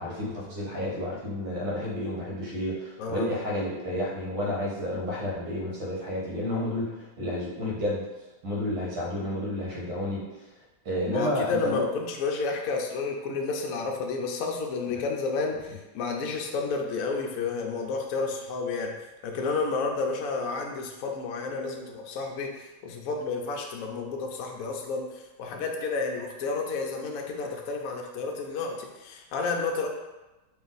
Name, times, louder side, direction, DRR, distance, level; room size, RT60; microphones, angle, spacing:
voice 1, 0.0-8.1 8.4-10.2 10.9-11.9, left 1 dB, 75° right, -5 dB, 2.1 m, -31 dB
voice 2, 3.0-3.3 11.1-18.9 19.2-29.9, left 4 dB, 85° left, 1 dB, 0.7 m, -31 dB
4.3 x 2.4 x 3.9 m, 1.1 s
omnidirectional pair, 2.2 m